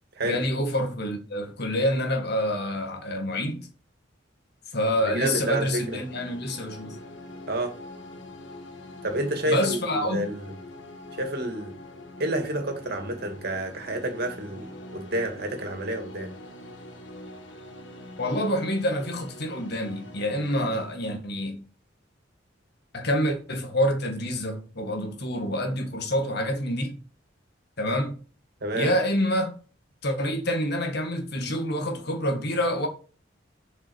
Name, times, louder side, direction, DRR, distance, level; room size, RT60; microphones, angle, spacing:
voice 1, 0.2-3.7 4.7-7.0 9.5-10.3 18.2-21.6 22.9-27.0 27.8-28.2 28.8-29.5 30.0-32.9, equal, 60° left, 2.1 m, -27 dB
sound 1, 4.9-20.9, left 1 dB, 75° left, 1.8 m, -44 dB
voice 2, 5.0-6.0 7.5-7.7 9.0-10.5 11.2-11.8 12.2-16.3 28.6-28.9, right 1 dB, 60° right, 2.3 m, -29 dB
7.6 x 6.0 x 6.4 m
head